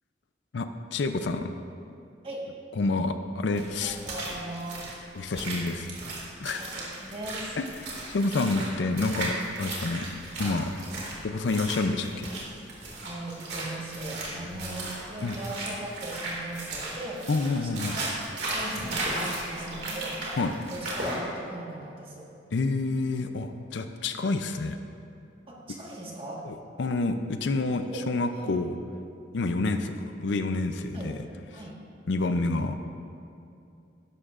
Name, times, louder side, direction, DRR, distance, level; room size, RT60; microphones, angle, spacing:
voice 1, 0.5-1.5 2.8-4.0 5.1-5.9 6.4-6.7 7.6-10.1 10.4-10.7 11.2-12.3 15.2-15.4 17.3-18.0 20.4-20.6 22.5-24.8 26.4-28.7 29.3-31.2 32.1-32.8, left 3 dB, 70° left, 8 dB, 0.5 m, -28 dB
sound 1, 3.5-21.2, right 2 dB, 60° right, 2.2 m, -35 dB
voice 2, 3.8-4.9 6.6-7.6 13.0-17.2 17.6-18.2 18.5-20.2 20.7-22.3 25.5-26.4 27.9-28.0 28.3-28.6 30.9-31.1 31.5-31.8, right 1 dB, 30° right, -3 dB, 1.5 m, -39 dB
11.5 x 11.5 x 2.5 m, 2.6 s
head